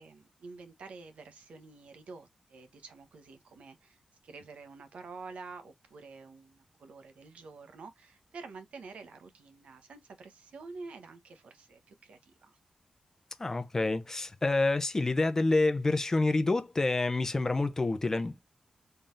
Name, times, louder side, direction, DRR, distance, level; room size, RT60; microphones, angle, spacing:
voice 1, 0.0-12.6, right 4 dB, 90° right, 1.0 m, -48 dB
voice 2, 13.4-18.4, left 2 dB, 25° left, 0.6 m, -28 dB
3.9 x 3.3 x 2.6 m
wide cardioid pair, 150°, 2 cm